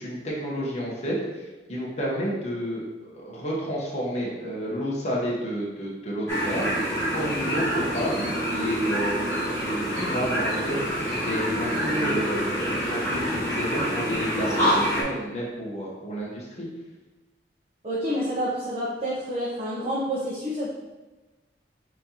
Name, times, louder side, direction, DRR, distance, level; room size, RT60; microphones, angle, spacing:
voice 1, 0.0-16.7, equal, 40° left, -5 dB, 1.0 m, -31 dB
sound 1, 6.3-15.0, equal, 15° left, 1.0 m, -26 dB
voice 2, 17.8-20.7, equal, 35° right, -7 dB, 0.8 m, -28 dB
5.9 x 2.9 x 2.8 m, 1.2 s
head